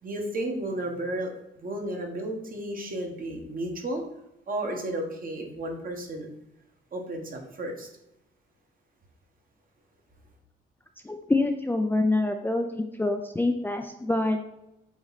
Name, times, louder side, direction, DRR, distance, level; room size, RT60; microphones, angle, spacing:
voice 1, 0.0-1.3 1.6-4.0 4.5-6.3 6.9-7.9, right 1 dB, 45° right, 2 dB, 1.5 m, -33 dB
voice 2, 11.0-12.7 13.0-14.4, left 2 dB, 10° left, 4 dB, 0.5 m, -25 dB
7.9 x 3.0 x 4.1 m, 0.86 s
cardioid pair, 90°, 20 cm